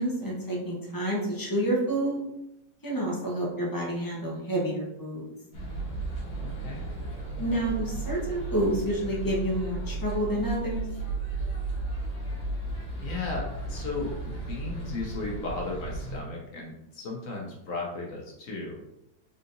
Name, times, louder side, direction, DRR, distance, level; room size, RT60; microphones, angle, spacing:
voice 1, 0.0-2.2 2.8-5.3 7.4-10.8, right 1 dB, 25° left, -3 dB, 0.4 m, -29 dB
sound 1, 5.5-16.2, right 3 dB, 40° left, 1.3 m, -34 dB
voice 2, 6.4-6.8 13.0-18.8, left 3 dB, 60° left, -1 dB, 1.0 m, -35 dB
4.1 x 3.7 x 2.6 m, 0.86 s
omnidirectional pair, 1.9 m